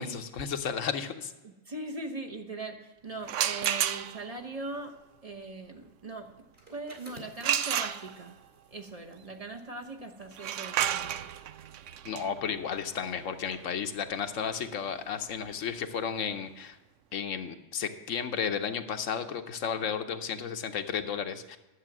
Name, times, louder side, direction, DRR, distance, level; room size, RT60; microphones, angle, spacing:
voice 1, 0.0-1.3 12.0-16.8 17.1-21.6, left 7 dB, 85° left, 1.2 m, -33 dB
voice 2, 1.4-8.3 8.7-11.3, right 2 dB, 35° right, 0.9 m, -40 dB
Outdoors Gate Chain-Clang-Lock-Rattle, 3.2-4.4 7.4-8.5 10.3-16.0, right 10 dB, 80° right, 0.9 m, -32 dB
sound 1, 6.4-11.9 12.3-12.6, equal, 50° right, 3.0 m, -55 dB
11.5 x 7.5 x 6.0 m
omnidirectional pair, 1.3 m